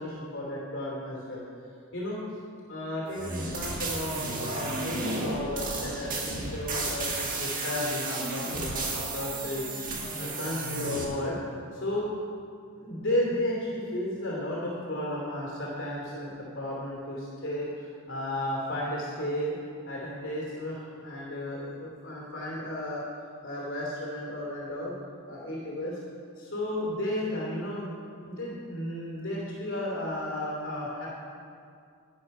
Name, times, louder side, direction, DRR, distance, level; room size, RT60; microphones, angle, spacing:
voice 1, 0.0-1.4 1.9-2.2 2.7-11.4 11.7-12.0 12.8-19.5 19.8-23.0 23.4-25.0 25.3-26.0 26.4-28.0 28.2-31.1, left 1 dB, 55° left, -5 dB, 2.8 m, -33 dB
sound 1, 3.1-11.1, right 2 dB, 35° right, 1.6 m, -33 dB
11.5 x 10.5 x 5.5 m, 2.4 s
head